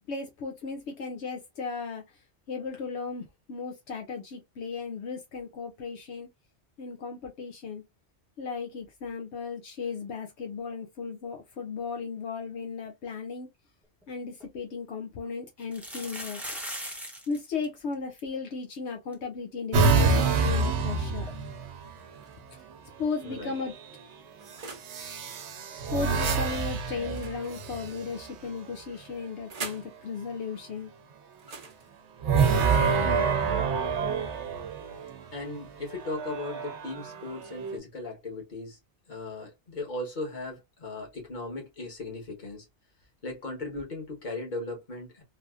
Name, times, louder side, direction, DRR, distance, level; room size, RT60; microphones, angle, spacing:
voice 1, 0.1-2.2 2.5-6.3 6.8-7.8 8.4-13.5 14.1-16.4 17.3-21.3 22.5-22.6 23.0-23.7 25.9-30.9, left 5 dB, 75° left, 0.9 m, -36 dB
sound 1, 14.0-14.1 14.4-14.5 15.6-17.4 17.6-17.7 17.9-18.2 18.7-18.8 19.1-19.2 21.3-21.4, equal, ahead, 0.7 m, -38 dB
sound 2, 19.7-22.0 23.3-23.7 24.9-28.3 32.2-35.2 35.9-37.8, right 4 dB, 80° right, 1.0 m, -27 dB
Old Electric Stove Oven Door Open and Close Distant, 21.8-22.6 23.3-25.0 27.0-28.1 29.0-30.0 31.3-33.3, right 4 dB, 40° right, 0.7 m, -45 dB
voice 2, 35.3-38.8 39.1-42.7 43.2-45.2, left 2 dB, 45° left, 1.4 m, -37 dB
3.4 x 2.6 x 2.4 m
omnidirectional pair, 1.2 m